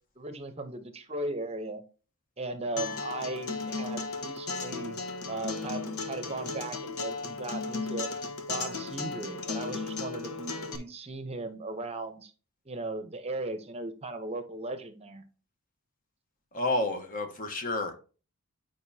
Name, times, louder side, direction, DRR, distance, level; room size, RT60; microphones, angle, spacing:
voice 1, 0.2-1.8 2.4-5.0 5.3-8.1 8.5-12.3 12.7-15.2, right 2 dB, 30° right, 0.7 m, -37 dB
Acoustic guitar, 2.8-10.8, left 3 dB, 75° left, 1.1 m, -35 dB
voice 2, 16.5-18.0, left 2 dB, 40° left, 1.0 m, -30 dB
9.2 x 5.2 x 2.7 m
head